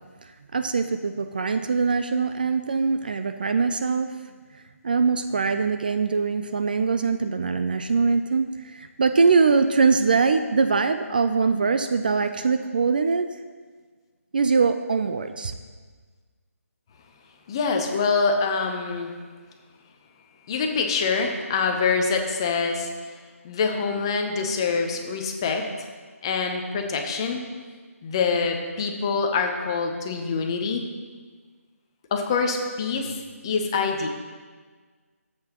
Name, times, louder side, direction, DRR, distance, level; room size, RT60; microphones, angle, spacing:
voice 1, 0.2-4.2 4.8-13.3 14.3-15.5, right 4 dB, 35° right, 9 dB, 0.3 m, -22 dB
voice 2, 17.5-19.1 20.5-22.9 23.4-25.7 26.2-27.4 28.0-30.9 32.1-34.1, left 4 dB, 20° left, 3 dB, 0.6 m, -25 dB
13.5 x 7.8 x 2.9 m, 1.5 s
hypercardioid pair, 170°, 8 cm